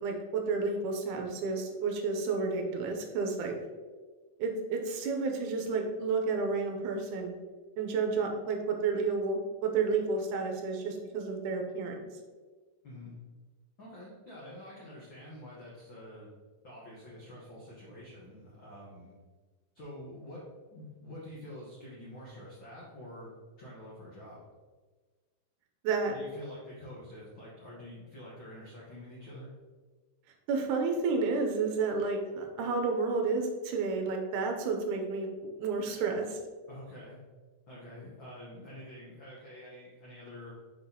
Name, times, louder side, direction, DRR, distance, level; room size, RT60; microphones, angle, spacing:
voice 1, 0.0-3.6 4.4-7.4 7.8-12.1 25.8-26.1 30.5-35.3 35.6-36.4, right 4 dB, 80° right, 3 dB, 2.0 m, -31 dB
voice 2, 12.8-13.2 13.8-16.3 16.6-19.1 19.7-20.4 20.7-24.4 26.1-29.5 36.7-37.2 37.7-40.5, left 1 dB, 65° left, -6 dB, 1.2 m, -47 dB
5.9 x 5.7 x 2.8 m, 1.4 s
omnidirectional pair, 3.9 m